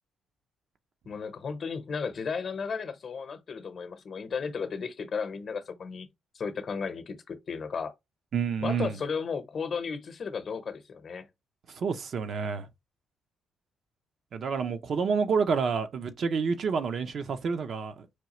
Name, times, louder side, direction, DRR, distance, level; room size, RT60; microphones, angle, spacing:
voice 1, 1.1-6.1 6.3-7.9 8.6-11.3, left 5 dB, 50° left, 0.8 m, -34 dB
voice 2, 8.3-9.0 11.7-12.7 14.3-18.1, right 5 dB, 55° right, 0.6 m, -29 dB
4.4 x 2.4 x 2.9 m
cardioid pair, 90°, 0 cm